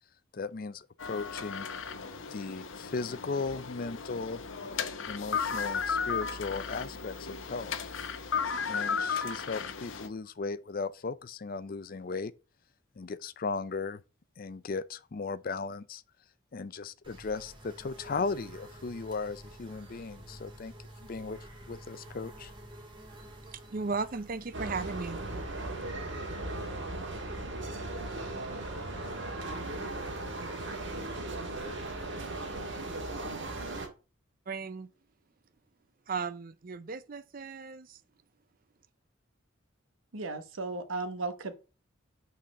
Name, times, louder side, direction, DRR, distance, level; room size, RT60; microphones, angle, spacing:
voice 1, 0.3-1.7 2.3-4.4 5.0-7.8 8.6-12.3 13.0-14.0 14.4-16.0 16.5-20.7 21.1-21.4 21.7-22.5, left 4 dB, 45° left, 0.5 m, -36 dB
sound 1, 1.0-10.1, left 6 dB, 70° left, 0.8 m, -35 dB
sound 2, 17.0-27.7, right 1 dB, 25° right, 1.7 m, -50 dB
voice 2, 23.4-25.2 34.5-34.9 36.1-38.0, right 4 dB, 45° right, 0.5 m, -36 dB
sound 3, 24.5-33.9, right 2 dB, 60° right, 1.7 m, -37 dB
voice 3, 40.1-41.5, right 3 dB, 80° right, 1.0 m, -35 dB
6.1 x 4.2 x 6.3 m
head